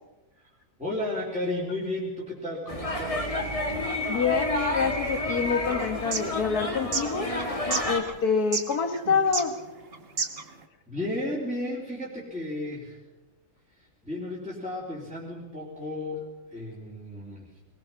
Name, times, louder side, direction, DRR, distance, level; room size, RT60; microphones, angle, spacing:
voice 1, 0.8-3.4 10.4-10.5 10.9-13.0 13.8-16.2 16.5-17.5, left 1 dB, 5° right, -7 dB, 3.9 m, -33 dB
sound 1, 2.7-8.0, left 1 dB, 20° left, 2.2 m, -29 dB
sound 2, 3.6-10.6, right 4 dB, 40° right, 1.5 m, -34 dB
voice 2, 4.1-7.3 7.9-9.6, left 5 dB, 70° left, 7 dB, 2.2 m, -27 dB
23.0 x 19.5 x 5.8 m, 1.1 s
omnidirectional pair, 1.7 m